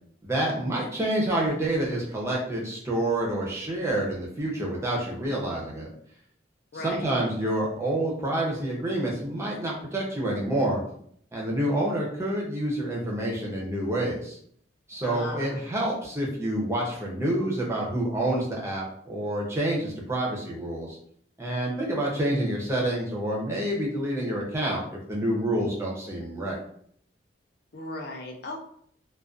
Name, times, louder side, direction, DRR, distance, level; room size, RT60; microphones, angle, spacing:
voice 1, 0.2-5.9 6.7-10.8 11.3-14.4 14.9-21.0 21.4-26.6, right 1 dB, 15° right, -3 dB, 0.5 m, -28 dB
voice 2, 6.7-7.1 15.0-15.6 27.7-28.6, left 2 dB, 55° left, 1 dB, 0.4 m, -36 dB
2.4 x 2.2 x 2.4 m, 0.64 s
head